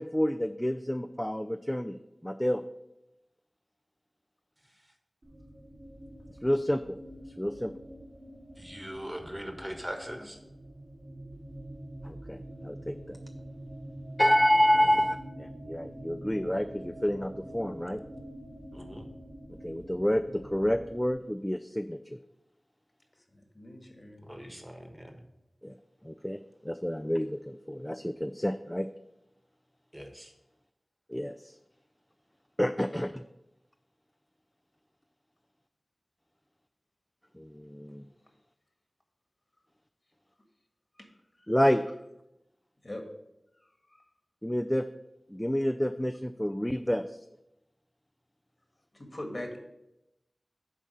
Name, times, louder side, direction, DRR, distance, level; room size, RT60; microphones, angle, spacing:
voice 1, 0.0-2.0 2.2-2.6 6.4-7.0 7.4-7.7 12.0-13.2 14.2-18.0 19.6-22.2 25.6-25.7 26.0-28.9 31.1-31.5 32.6-33.2 37.4-38.1 41.5-41.8 44.4-44.8 45.3-47.2, equal, 10° left, 9 dB, 0.3 m, -29 dB
sound 1, 5.2-21.1, right 1 dB, 65° right, 1.8 m, -46 dB
voice 2, 8.6-10.4 18.7-19.1 24.2-25.2 29.9-30.3, equal, 10° right, 5 dB, 1.1 m, -41 dB
voice 3, 23.5-24.3 41.0-41.1 41.4-41.5 42.8-43.0 48.9-49.6, left 1 dB, 45° left, 3 dB, 1.6 m, -40 dB
7.3 x 4.2 x 6.3 m, 0.88 s
wide cardioid pair, 50°, 0 cm